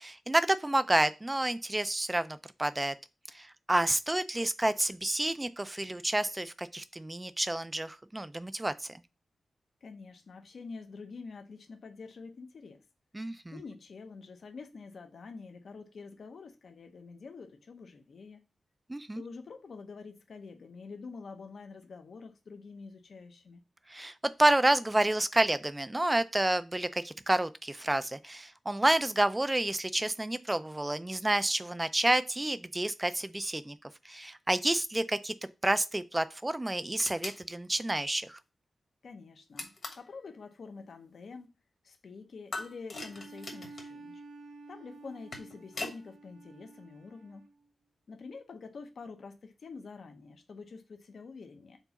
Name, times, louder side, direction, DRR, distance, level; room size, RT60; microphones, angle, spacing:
voice 1, 0.0-2.9 3.3-8.7 13.1-13.5 18.9-19.2 23.9-24.1 24.4-33.8 34.0-35.3 35.6-38.4, right 1 dB, 15° right, 0.4 m, -29 dB
voice 2, 9.8-12.8 13.5-18.4 19.1-23.6 39.0-41.5 41.8-44.2 44.7-47.5 48.1-51.8, left 4 dB, 60° left, 0.8 m, -47 dB
sound 1, 37.0-37.4 39.6-40.1 42.5-43.9 45.0-46.0, left 3 dB, 40° left, 1.3 m, -40 dB
Bowed string instrument, 42.9-47.6, right 3 dB, 75° right, 0.7 m, -51 dB
4.5 x 3.9 x 5.7 m
wide cardioid pair, 170°, 0 cm